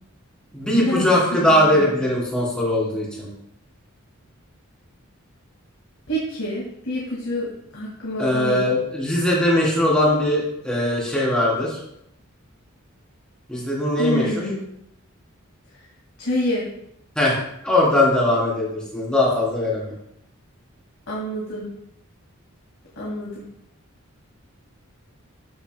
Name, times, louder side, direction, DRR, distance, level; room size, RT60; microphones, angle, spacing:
voice 1, 0.5-3.3 8.2-11.8 13.5-14.5 17.1-17.4 17.6-19.9, left 1 dB, 5° left, -6 dB, 3.4 m, -20 dB
voice 2, 1.4-1.9 6.1-7.5 7.7-8.7 14.0-14.6 16.2-16.6 21.1-21.7 23.0-23.4, left 1 dB, 75° left, -5 dB, 2.2 m, -27 dB
14.0 x 6.6 x 2.2 m, 0.78 s
head